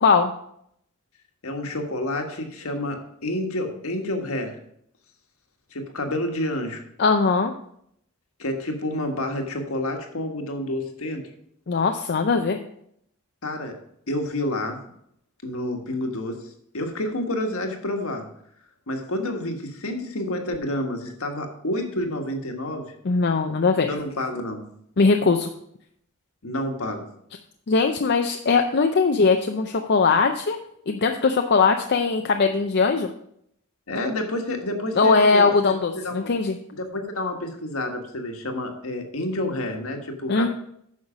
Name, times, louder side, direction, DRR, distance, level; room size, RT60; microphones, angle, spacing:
voice 1, 0.0-0.3 7.0-7.5 11.7-12.6 23.0-23.9 25.0-25.5 27.7-30.6 30.9-33.1 35.0-36.6 40.3-40.5, left 4 dB, 50° left, 5 dB, 0.6 m, -20 dB
voice 2, 1.4-4.6 5.7-6.8 8.4-11.3 13.4-13.8 14.1-14.8 15.4-18.3 18.9-22.9 23.9-24.6 26.4-27.0 33.9-36.3 36.7-40.5, left 1 dB, 70° left, 4 dB, 1.6 m, -29 dB
9.6 x 6.5 x 5.1 m, 0.70 s
head